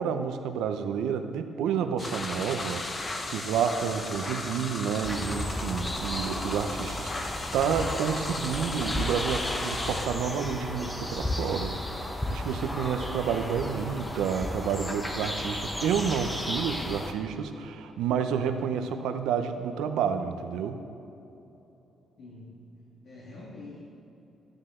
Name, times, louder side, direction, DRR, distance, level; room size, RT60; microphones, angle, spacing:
voice 1, 0.0-11.8 12.1-20.8, right 7 dB, 90° right, 8 dB, 0.7 m, -30 dB
sound 1, 2.0-10.1, left 2 dB, 30° left, 0.9 m, -36 dB
sound 2, 5.0-17.1, left 1 dB, 15° left, 1.1 m, -33 dB
voice 2, 22.2-22.8 23.0-23.8, left 2 dB, 70° left, -6 dB, 2.0 m, -45 dB
12.5 x 9.9 x 3.7 m, 2.9 s
cardioid pair, 90°, 0 cm